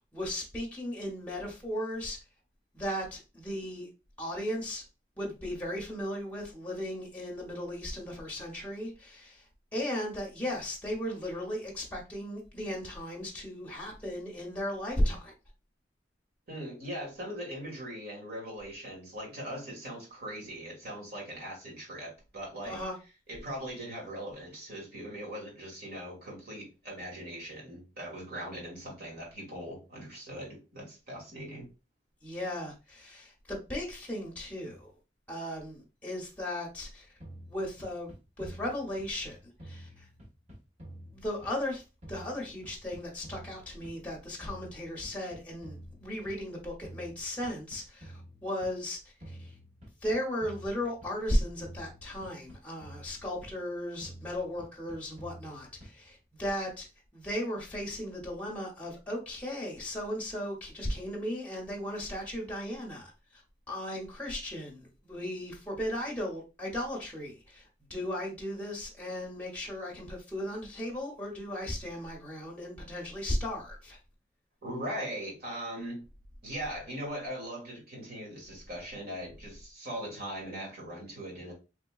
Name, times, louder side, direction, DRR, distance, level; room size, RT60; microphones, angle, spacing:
voice 1, 0.0-2.2 2.7-3.9 4.2-4.8 5.2-9.4 9.7-15.3 22.6-23.0 32.2-34.9 35.3-37.1 37.5-40.1 41.1-41.8 42.1-49.0 49.3-49.5 50.0-56.9 57.1-63.4 63.7-74.0, left 1 dB, 10° left, 0.8 m, -36 dB
voice 2, 16.5-22.8 23.3-31.7 74.6-76.1 76.4-81.5, equal, 60° right, 1.7 m, -40 dB
sound 1, 37.2-39.3 39.6-41.8 42.0-44.1 44.4-46.5 46.8-48.8 49.2-51.3 51.6-53.7 54.0-56.1, right 1 dB, 40° right, 1.4 m, -49 dB
3.3 x 2.9 x 2.3 m
head